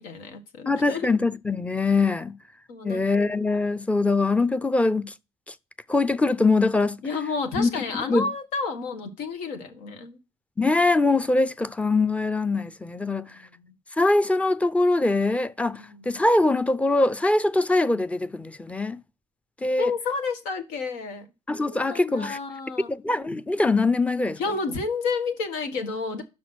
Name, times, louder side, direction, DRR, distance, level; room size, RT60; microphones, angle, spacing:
voice 1, 0.0-1.1 2.7-3.0 7.0-10.2 13.1-13.7 15.7-16.2 19.8-21.3 21.6-22.9 24.4-26.2, left 4 dB, 85° left, 1.5 m, -31 dB
voice 2, 0.7-2.3 2.8-5.1 5.9-6.9 7.6-8.2 10.6-13.2 14.0-15.8 16.1-19.0 19.6-19.9 21.5-22.4 22.9-24.4, left 2 dB, 10° left, 0.5 m, -23 dB
6.1 x 5.2 x 6.1 m
cardioid pair, 90°, 13 cm